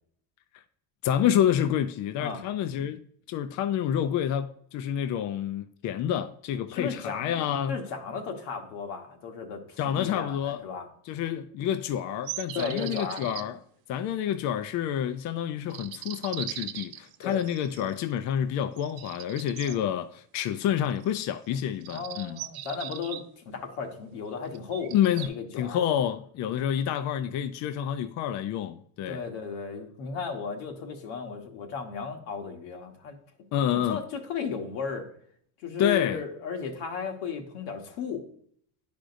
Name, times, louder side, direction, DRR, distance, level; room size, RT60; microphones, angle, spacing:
voice 1, 1.0-3.0 3.3-7.8 9.8-10.6 11.1-13.6 13.9-22.4 24.9-29.2 33.5-34.0 35.8-36.2, left 10 dB, 50° left, 0.4 m, -28 dB
voice 2, 6.7-7.2 7.7-10.9 12.5-13.2 17.2-17.4 19.6-19.8 21.9-25.8 29.1-33.2 33.7-35.1 35.6-38.2, left 5 dB, 90° left, 1.4 m, -35 dB
sound 1, 12.2-13.4 15.7-18.0 18.8-19.8 21.0-21.4 21.8-23.2 24.5-25.3, right 13 dB, 65° right, 0.6 m, -39 dB
10.0 x 5.0 x 2.6 m
cardioid pair, 135°, 39 cm